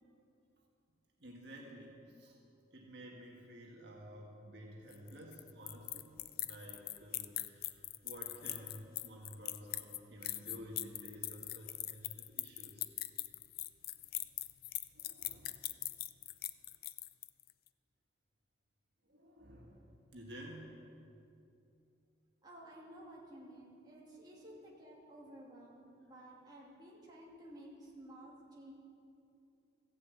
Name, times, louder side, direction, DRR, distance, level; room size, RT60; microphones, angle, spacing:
voice 1, 1.2-2.4 2.7-12.8 14.9-15.5 19.1-20.8 24.3-24.5, equal, 60° right, -2 dB, 1.7 m, -52 dB
sound 1, 4.9-17.5, left 15 dB, 50° left, 0.4 m, -41 dB
voice 2, 22.4-28.7, right 1 dB, 20° right, -5 dB, 2.3 m, -54 dB
14.5 x 7.5 x 8.3 m, 2.7 s
head